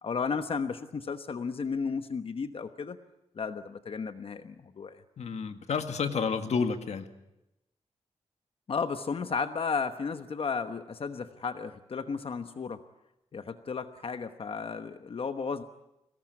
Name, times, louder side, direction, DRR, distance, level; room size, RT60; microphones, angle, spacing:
voice 1, 0.0-3.0 3.3-5.0 8.7-12.8 13.3-15.6, left 5 dB, 55° left, 9 dB, 1.1 m, -34 dB
voice 2, 5.2-7.1, left 5 dB, 75° left, 7 dB, 1.9 m, -30 dB
23.5 x 18.5 x 9.5 m, 0.90 s
wide cardioid pair, 105°, 11 cm